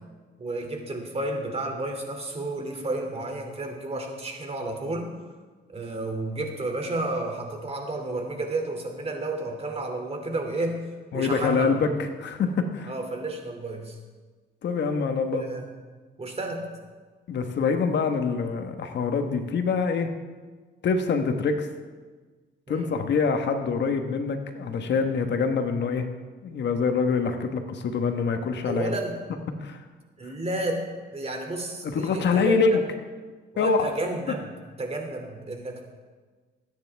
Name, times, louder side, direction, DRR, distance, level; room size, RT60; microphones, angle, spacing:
voice 1, 0.4-5.1 5.7-10.8 11.1-11.8 12.9-14.0 15.3-15.6 16.2-16.7 22.7-22.9 28.6-29.2 30.2-30.8 31.1-32.8 33.5-34.5 34.8-35.8, right 2 dB, 30° right, 3 dB, 2.7 m, -31 dB
voice 2, 11.1-12.9 14.6-15.4 17.3-20.1 20.8-21.7 22.7-26.1 26.4-29.0 29.6-29.8 30.2-30.3 31.8-32.8 33.6-33.8, left 5 dB, 60° left, 6 dB, 1.3 m, -25 dB
21.0 x 9.7 x 3.5 m, 1.4 s
cardioid pair, 90°, 20 cm